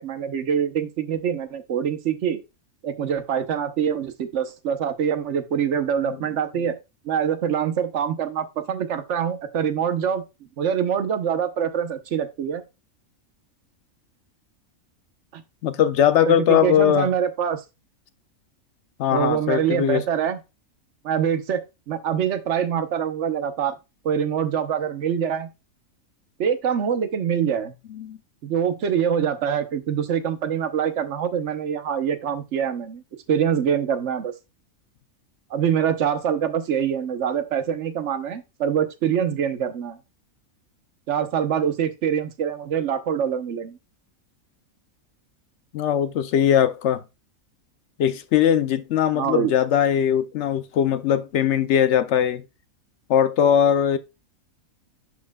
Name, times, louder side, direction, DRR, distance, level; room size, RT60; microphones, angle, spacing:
voice 1, 0.0-2.4 2.8-6.8 7.0-10.2 10.6-12.6 15.3-15.4 16.3-17.6 19.1-20.4 21.0-21.6 21.9-23.7 24.0-25.5 26.4-27.7 28.4-33.0 33.3-34.3 35.5-40.0 41.1-43.8 49.1-49.5, right 8 dB, 60° right, 1.1 m, -24 dB
voice 2, 15.6-17.1 19.0-20.0 27.9-28.2 45.7-47.0 48.0-52.4 53.1-54.0, left 9 dB, 65° left, 0.8 m, -20 dB
11.5 x 4.4 x 2.3 m
omnidirectional pair, 1.5 m